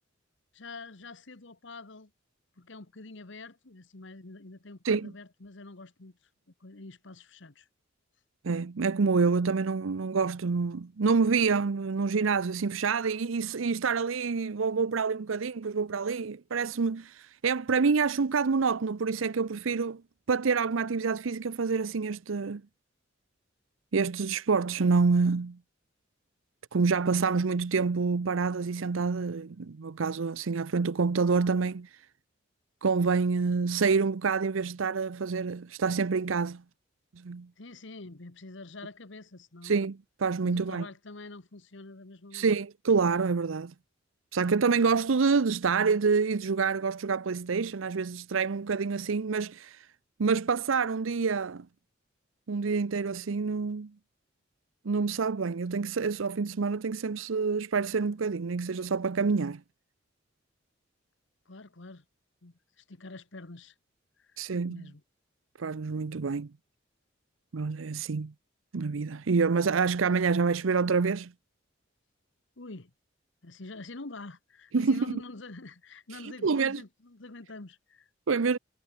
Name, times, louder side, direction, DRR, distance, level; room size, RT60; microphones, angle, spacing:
voice 1, 0.5-2.1 2.6-6.3 6.6-7.7 37.6-39.8 40.4-42.6 61.4-62.0 62.4-63.7 64.2-64.4 64.7-65.0 72.6-72.9 73.4-78.1, left 3 dB, 65° left, 1.4 m, -46 dB
voice 2, 8.4-20.0 20.3-22.6 23.9-25.6 26.7-31.9 32.8-36.6 37.2-37.5 39.6-40.9 42.3-43.7 44.3-49.9 50.2-51.7 52.5-53.9 54.8-59.6 64.4-64.9 65.6-66.5 67.5-68.3 68.7-71.3 74.7-75.2 76.2-76.8 78.3-78.6, right 5 dB, 85° right, 0.6 m, -27 dB
head